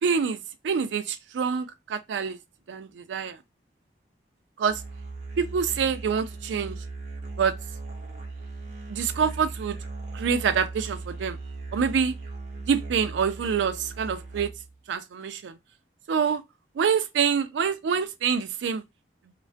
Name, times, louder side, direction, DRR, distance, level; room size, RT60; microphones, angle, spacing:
voice 1, 0.0-2.4 2.7-3.4 4.6-4.8 5.4-6.8 7.4-7.5 8.9-9.8 10.1-11.4 11.7-12.1 12.7-14.5 14.9-15.6 16.1-16.4 16.8-18.8, right 6 dB, 90° right, 0.3 m, -26 dB
Musical instrument, 4.7-14.8, right 3 dB, 45° right, 0.7 m, -38 dB
2.3 x 2.2 x 2.4 m
head